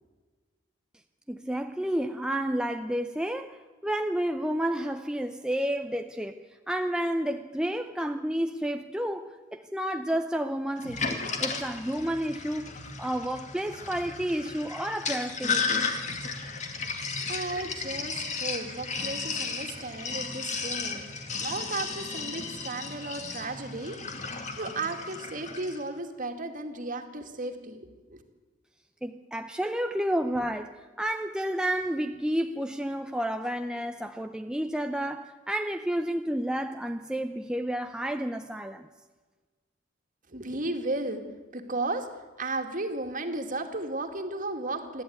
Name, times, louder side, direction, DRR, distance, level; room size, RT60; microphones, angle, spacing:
voice 1, 1.3-15.9 29.0-38.9, right 1 dB, 5° right, 0.6 m, -31 dB
Sink (filling or washing), 10.8-25.8, left 4 dB, 35° left, 2.4 m, -34 dB
voice 2, 17.2-21.1 21.4-28.2 40.3-41.2 41.5-42.1 42.4-45.0, right 2 dB, 40° right, 2.2 m, -34 dB
27.5 x 11.5 x 9.4 m
head